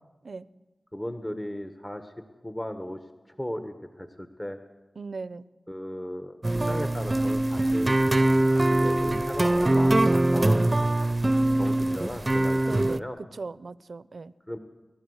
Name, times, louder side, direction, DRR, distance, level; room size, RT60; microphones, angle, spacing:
voice 1, 0.9-2.1 2.4-3.0 3.4-4.6 5.7-8.0 8.7-10.9 11.5-13.2 14.5-14.6, left 1 dB, 20° left, 7 dB, 1.3 m, -36 dB
voice 2, 5.0-5.4 12.7-13.1 13.4-14.3, right 4 dB, 70° right, 17 dB, 0.6 m, -38 dB
sound 1, 6.4-13.0, right 1 dB, 30° right, 0.7 m, -23 dB
29.5 x 12.5 x 8.0 m, 1.1 s
wide cardioid pair, 60°, 0 cm